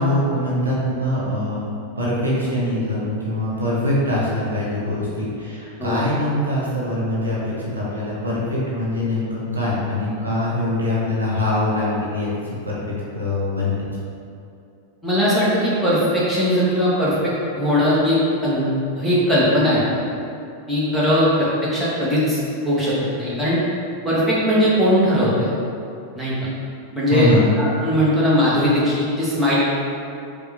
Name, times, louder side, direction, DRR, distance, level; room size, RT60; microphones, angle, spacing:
voice 1, 0.0-1.7 2.0-12.3 12.6-13.8 27.1-27.5, left 1 dB, 80° right, -6 dB, 0.8 m, -23 dB
voice 2, 15.0-18.6 19.0-19.8 20.7-22.4 22.6-23.6 24.0-25.5 26.2-26.3 26.9-27.3 27.6-29.5, equal, ahead, -10 dB, 1.2 m, -19 dB
4.9 x 2.3 x 3.4 m, 2.6 s
figure-of-eight pair, 90°, 0 cm